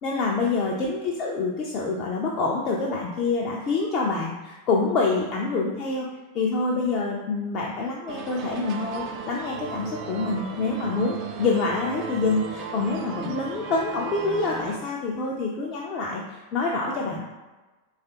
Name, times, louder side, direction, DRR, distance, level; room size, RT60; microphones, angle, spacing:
voice 1, 0.0-6.1 6.3-17.2, left 3 dB, 35° left, -3 dB, 0.4 m, -26 dB
sound 1, 8.1-14.8, right 5 dB, 40° right, 0.3 m, -35 dB
3.2 x 2.4 x 2.8 m, 1.2 s
figure-of-eight pair, 90°, 0 cm